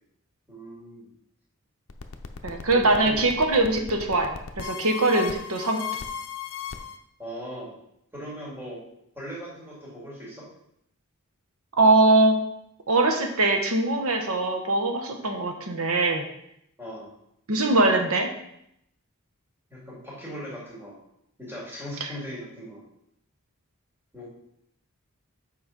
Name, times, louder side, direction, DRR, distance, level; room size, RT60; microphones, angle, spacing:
voice 1, 0.5-1.1 2.7-3.2 7.2-7.7 8.1-8.8 9.1-10.5 16.8-17.1 19.7-21.0 21.4-22.8 24.1-24.3, equal, 10° right, -7 dB, 2.5 m, -39 dB
sound 1, 1.9-7.0, left 7 dB, 65° left, 0.6 m, -36 dB
voice 2, 2.4-5.8 11.8-12.4 12.9-16.2 17.5-18.3 22.0-22.1, right 2 dB, 80° right, 4 dB, 1.1 m, -22 dB
7.3 x 5.0 x 3.9 m, 0.76 s
head